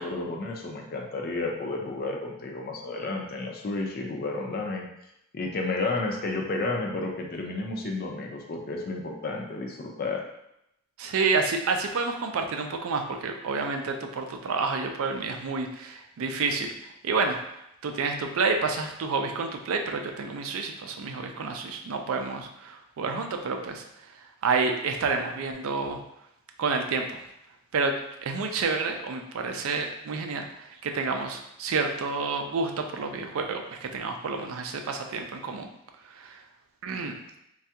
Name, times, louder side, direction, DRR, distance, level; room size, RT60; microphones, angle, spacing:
voice 1, 0.0-4.9 5.3-10.2, left 3 dB, 45° left, 1 dB, 0.4 m, -31 dB
voice 2, 11.0-16.7 17.0-23.8 24.4-26.0 26.6-27.2 27.7-27.9 28.2-35.7 36.1-36.4 36.8-37.2, right 4 dB, 65° right, 4 dB, 0.4 m, -29 dB
3.3 x 2.3 x 2.8 m, 0.82 s
head